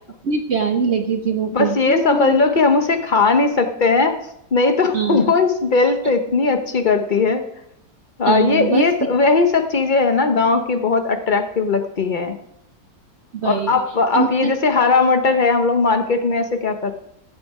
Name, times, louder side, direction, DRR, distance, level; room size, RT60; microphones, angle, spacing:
voice 1, 0.2-2.4 4.9-5.3 8.3-9.1 13.3-13.8 14.1-14.5, right 6 dB, 60° right, 7 dB, 0.7 m, -22 dB
voice 2, 1.5-4.2 4.5-7.4 8.2-12.4 13.4-16.9, left 4 dB, 50° left, 7 dB, 0.6 m, -18 dB
15.0 x 8.5 x 4.8 m, 0.78 s
omnidirectional pair, 2.0 m